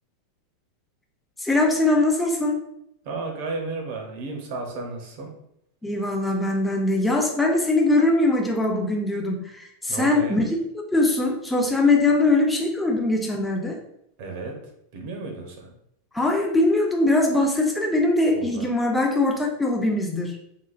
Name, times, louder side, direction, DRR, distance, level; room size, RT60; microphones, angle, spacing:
voice 1, 1.4-2.6 5.8-10.4 10.7-13.8 16.1-20.4, left 2 dB, 5° left, 0 dB, 0.5 m, -22 dB
voice 2, 3.0-5.3 9.9-10.4 14.2-14.6 14.9-15.7 18.3-18.7, right 3 dB, 60° right, 2 dB, 0.7 m, -33 dB
3.8 x 2.3 x 2.4 m, 0.76 s
supercardioid pair, 145°, 0 cm